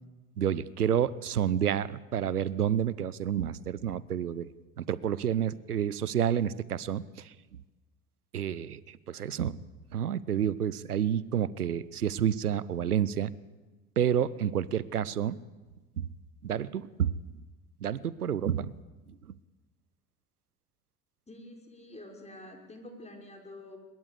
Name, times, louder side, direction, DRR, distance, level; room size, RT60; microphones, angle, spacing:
voice 1, 0.4-4.5 4.8-7.3 8.3-9.6 9.9-13.3 14.0-15.4 16.0-16.1 16.4-17.2 17.8-18.7, right 9 dB, 80° right, 20 dB, 0.8 m, -29 dB
voice 2, 21.3-23.8, left 1 dB, 15° left, 2 dB, 5.6 m, -47 dB
22.5 x 21.0 x 8.4 m, 1.2 s
figure-of-eight pair, 60°, 45 cm